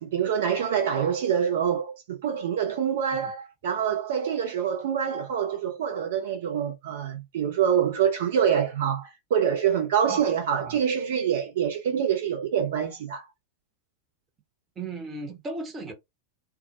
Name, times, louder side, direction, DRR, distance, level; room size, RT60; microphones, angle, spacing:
voice 1, 0.0-13.2, right 8 dB, 55° right, 0.5 m, -26 dB
voice 2, 14.8-15.9, right 3 dB, 20° right, 0.8 m, -36 dB
2.3 x 2.0 x 2.7 m
figure-of-eight pair, 90°, 0 cm